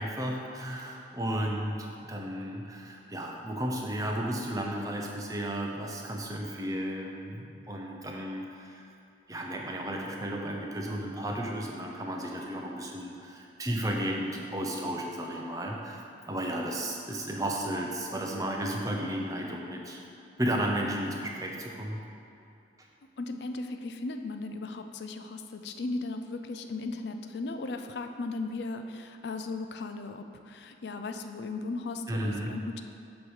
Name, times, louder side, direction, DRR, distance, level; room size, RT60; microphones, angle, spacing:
voice 1, 0.0-8.9 9.3-20.0 20.4-22.0 32.1-32.5, right 1 dB, 20° right, 0 dB, 0.7 m, -33 dB
voice 2, 23.2-32.8, left 3 dB, 65° left, 7 dB, 0.4 m, -36 dB
8.3 x 3.1 x 6.3 m, 2.7 s
head